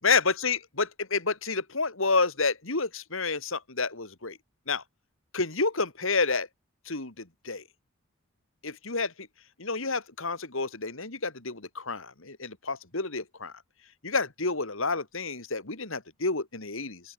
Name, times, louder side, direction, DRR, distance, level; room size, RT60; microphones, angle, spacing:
voice 1, 0.0-4.4 4.7-4.8 5.3-6.5 6.9-7.1 7.4-7.6 8.6-9.1 9.6-13.5 14.0-17.0, left 4 dB, 70° left, 2.7 m, -29 dB
open air
head